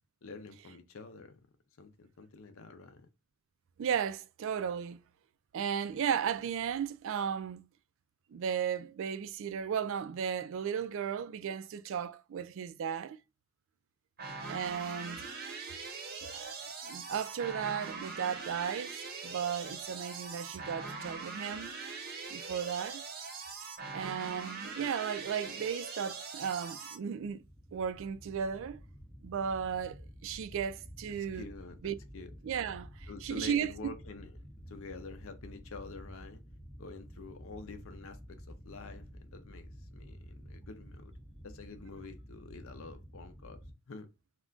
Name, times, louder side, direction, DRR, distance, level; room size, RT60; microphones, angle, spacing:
voice 1, 0.2-1.4 1.8-3.1 31.3-32.3 33.1-34.3 34.7-36.4 36.8-41.1 41.4-43.6 43.9-44.1, left 3 dB, 65° left, 0.5 m, -48 dB
voice 2, 3.8-5.0 5.5-7.6 8.3-13.2 14.5-15.3 16.3-21.8 22.3-23.0 23.9-27.4 27.7-28.8 29.2-31.5 31.8-31.9 32.4-33.9, right 7 dB, 60° right, 0.3 m, -35 dB
sound 1, 14.2-27.0, right 4 dB, 40° right, 0.7 m, -42 dB
sound 2, 27.3-43.7, equal, 5° right, 0.5 m, -50 dB
2.4 x 2.2 x 3.7 m
head